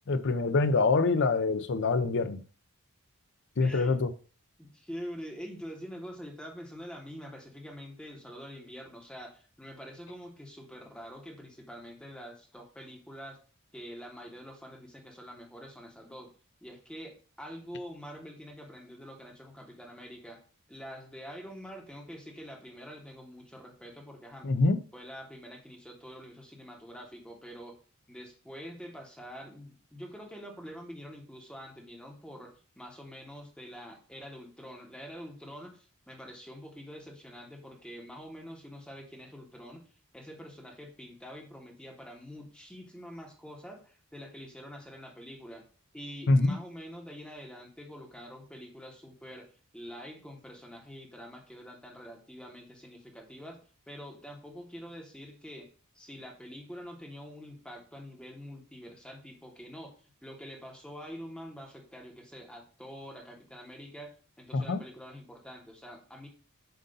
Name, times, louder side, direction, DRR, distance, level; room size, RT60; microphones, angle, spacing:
voice 1, 0.1-2.4 3.6-4.1 24.4-24.8 46.3-46.6 64.5-64.8, left 3 dB, 55° left, 0.6 m, -25 dB
voice 2, 3.6-4.0 4.6-13.4 13.7-16.3 16.6-20.4 20.7-24.5 24.9-27.7 28.1-39.9 40.1-45.6 45.9-49.5 49.7-53.6 53.9-55.7 55.9-59.9 60.2-64.1 64.4-66.3, equal, 5° left, 1.2 m, -46 dB
7.7 x 2.7 x 5.3 m
head